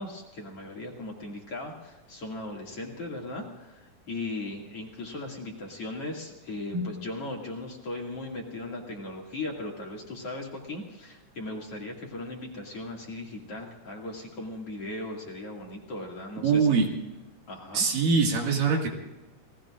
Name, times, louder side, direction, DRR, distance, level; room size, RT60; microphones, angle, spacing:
voice 1, 0.0-16.7 17.5-17.9, left 2 dB, 45° left, -1 dB, 3.0 m, -38 dB
voice 2, 16.4-16.9 17.7-18.9, right 5 dB, 65° right, 1 dB, 3.6 m, -23 dB
30.0 x 19.0 x 2.5 m, 1.1 s
omnidirectional pair, 4.1 m